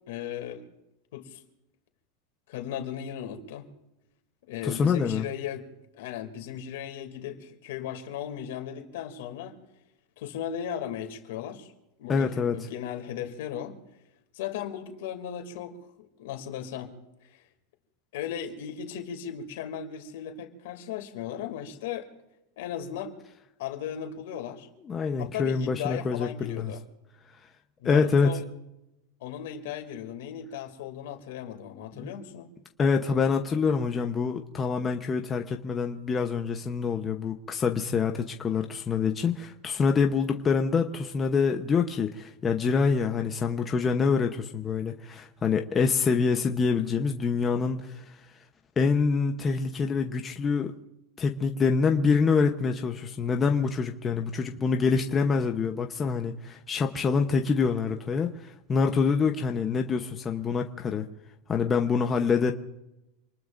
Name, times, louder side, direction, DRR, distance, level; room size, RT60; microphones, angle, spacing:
voice 1, 0.1-0.7 1.1-1.4 2.5-3.6 4.4-5.7 5.9-9.6 10.2-11.7 12.0-13.8 14.3-17.0 17.3-17.4 18.1-22.1 22.6-23.1 23.6-24.7 25.2-26.8 27.8-28.4 29.2-32.5, left 9 dB, 70° left, 5 dB, 2.7 m, -36 dB
voice 2, 4.6-5.3 12.1-12.6 24.9-26.7 27.8-28.4 32.0-32.1 32.8-48.2 48.8-50.7 51.2-61.0 61.5-62.5, left 5 dB, 20° left, 4 dB, 0.9 m, -26 dB
27.0 x 20.0 x 2.6 m, 0.90 s
supercardioid pair, 155°, 0 cm